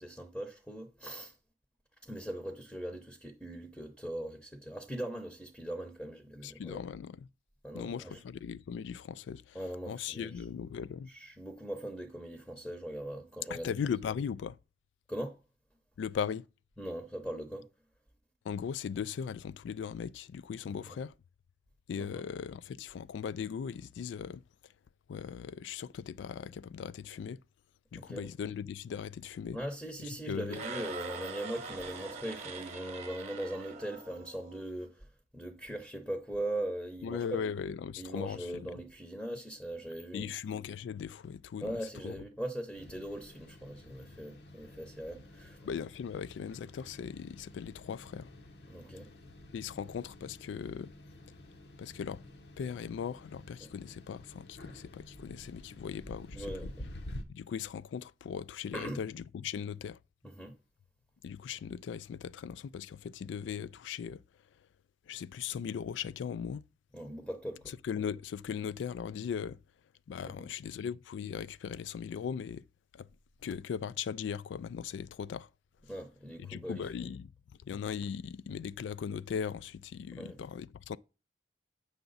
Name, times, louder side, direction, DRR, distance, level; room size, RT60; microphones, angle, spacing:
voice 1, 0.0-1.3 2.0-6.8 7.6-8.2 9.5-10.3 11.1-13.7 15.1-15.4 16.8-17.7 20.7-21.0 22.0-22.2 28.0-28.3 29.5-35.1 35.3-37.4 38.0-40.3 41.6-45.6 48.7-49.1 56.3-56.7 58.7-59.0 60.2-60.5 66.9-67.7 70.2-70.5 75.9-77.1 80.2-80.4, right 1 dB, 5° left, 0.7 m, -40 dB
voice 2, 6.4-7.3 7.7-9.6 9.9-11.1 13.5-14.6 16.0-16.4 18.4-21.1 21.9-24.4 25.1-27.4 27.9-29.6 30.0-30.6 37.0-38.7 40.1-42.2 45.6-48.3 49.5-50.9 51.8-52.2 52.6-56.7 57.3-60.0 61.2-64.2 65.1-66.6 67.8-69.6 70.1-72.6 72.9-73.1 73.4-75.5 76.4-77.3 77.7-81.0, left 7 dB, 85° left, 0.3 m, -38 dB
sound 1, 30.5-34.6, right 3 dB, 40° right, 0.9 m, -43 dB
sound 2, 42.7-57.2, left 1 dB, 60° left, 0.8 m, -50 dB
7.8 x 5.8 x 3.9 m
head